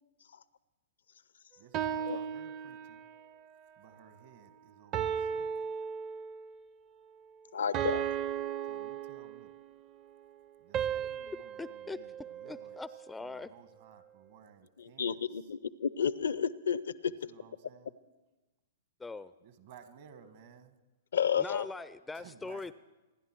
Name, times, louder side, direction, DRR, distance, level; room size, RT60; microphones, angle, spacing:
voice 1, 1.6-3.0 3.8-5.5 8.7-9.5 10.6-12.8 13.2-15.4 17.3-17.9 19.4-20.7 22.1-22.7, right 7 dB, 55° right, 10 dB, 1.5 m, -57 dB
sound 1, 1.7-3.3 4.9-6.6 7.7-9.7 10.7-13.1, right 8 dB, 35° right, 0.6 m, -36 dB
voice 2, 7.5-8.1 14.8-17.1 21.1-21.7, left 7 dB, 70° left, 18 dB, 0.5 m, -31 dB
voice 3, 11.0-12.0 12.4-13.5 19.0-19.3 21.4-22.7, left 3 dB, 10° left, 15 dB, 0.4 m, -42 dB
26.5 x 11.0 x 4.5 m, 1.1 s
figure-of-eight pair, 115°, 0 cm